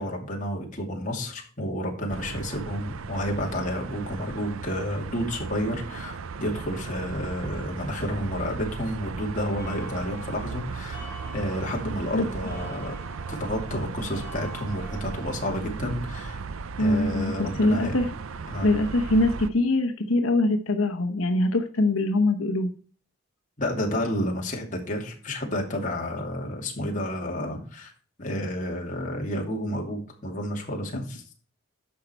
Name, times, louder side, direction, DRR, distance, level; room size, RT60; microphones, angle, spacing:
voice 1, 0.0-11.0 11.3-13.0 13.3-16.4 16.8-17.9 18.5-18.7 23.6-27.9 28.2-31.2, equal, 40° left, 0 dB, 2.6 m, -30 dB
sound 1, 2.1-19.5, right 5 dB, 85° right, 0.6 m, -36 dB
sound 2, 9.6-15.3, right 1 dB, 10° right, 5.5 m, -45 dB
voice 2, 16.8-18.1 18.6-22.7, left 2 dB, 90° left, 5 dB, 1.0 m, -23 dB
10.5 x 6.6 x 4.5 m, 0.41 s
head